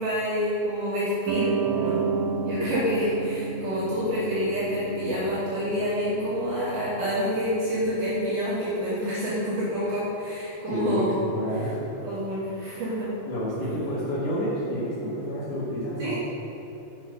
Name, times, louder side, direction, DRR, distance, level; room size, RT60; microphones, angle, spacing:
voice 1, 0.0-2.0 2.4-11.2 12.0-13.1 16.0-16.2, equal, 65° right, -10 dB, 2.9 m, -28 dB
Piano, 1.3-7.8, right 4 dB, 80° right, 2.2 m, -31 dB
voice 2, 10.7-11.8 13.3-16.2, equal, 75° left, -14 dB, 3.9 m, -29 dB
7.6 x 6.0 x 5.4 m, 2.8 s
omnidirectional pair, 4.3 m